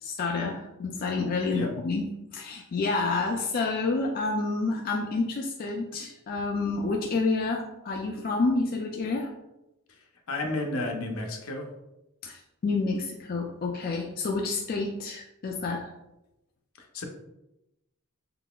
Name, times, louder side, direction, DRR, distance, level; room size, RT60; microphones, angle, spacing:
voice 1, 0.0-9.3 12.2-15.9, left 3 dB, 45° left, 0 dB, 0.4 m, -29 dB
voice 2, 10.3-11.7 16.8-17.0, left 2 dB, 75° left, 2 dB, 0.7 m, -32 dB
3.9 x 3.6 x 2.3 m, 0.91 s
head